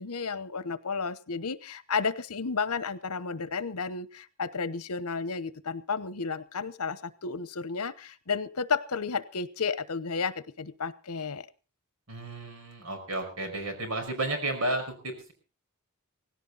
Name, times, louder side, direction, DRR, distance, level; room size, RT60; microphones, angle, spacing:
voice 1, 0.0-11.5, left 5 dB, 80° left, 15 dB, 1.0 m, -32 dB
voice 2, 12.1-15.3, right 2 dB, 70° right, 6 dB, 5.4 m, -32 dB
17.5 x 17.0 x 4.0 m, 0.34 s
head